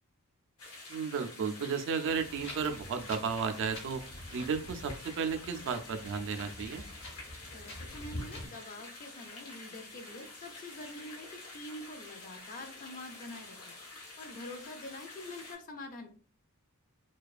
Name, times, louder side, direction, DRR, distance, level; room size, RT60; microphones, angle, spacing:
sound 1, 0.6-15.5, left 2 dB, 85° left, 0.9 m, -49 dB
voice 1, 0.9-4.0 4.3-6.8, right 6 dB, 60° right, 6 dB, 0.3 m, -33 dB
Wind, 2.1-8.5, left 1 dB, 60° left, 0.8 m, -46 dB
voice 2, 7.5-13.6 14.2-16.1, left 1 dB, 40° left, 6 dB, 0.4 m, -46 dB
2.4 x 2.2 x 2.3 m, 0.42 s
head